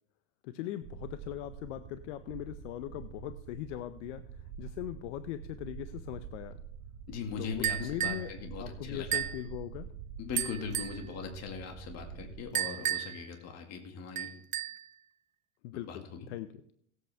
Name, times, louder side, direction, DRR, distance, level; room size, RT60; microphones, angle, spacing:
voice 1, 0.4-6.6 7.4-9.9 10.9-11.0 15.6-16.6, left 13 dB, 80° left, 12 dB, 0.7 m, -40 dB
sound 1, 0.8-12.4, right 8 dB, 70° right, 1.0 m, -46 dB
voice 2, 7.1-9.2 10.2-14.3 15.8-16.3, left 5 dB, 45° left, 4 dB, 1.9 m, -40 dB
sound 2, 7.6-8.3 9.1-9.4 10.4-11.0 12.5-13.3 14.2-14.9, right 10 dB, 25° right, 0.3 m, -33 dB
17.0 x 8.1 x 3.4 m, 0.71 s
supercardioid pair, 115°, 35 cm